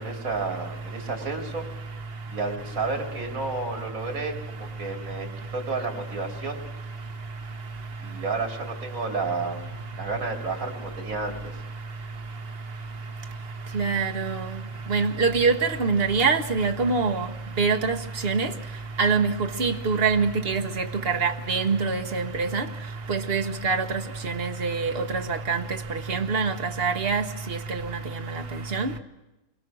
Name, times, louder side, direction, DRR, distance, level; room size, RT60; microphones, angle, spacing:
voice 1, 0.0-1.7 2.3-6.6 8.0-9.6 10.0-11.5, right 3 dB, 80° right, 3.5 m, -31 dB
voice 2, 13.7-14.3 14.9-17.3 17.6-17.9 18.2-18.5 19.0-19.3 19.6-22.6 23.1-23.8 24.2-24.9 25.3-25.6 26.1-27.2 27.7-27.8 28.7-28.9, right 4 dB, 45° right, 1.5 m, -24 dB
28.5 x 22.5 x 6.3 m
omnidirectional pair, 1.4 m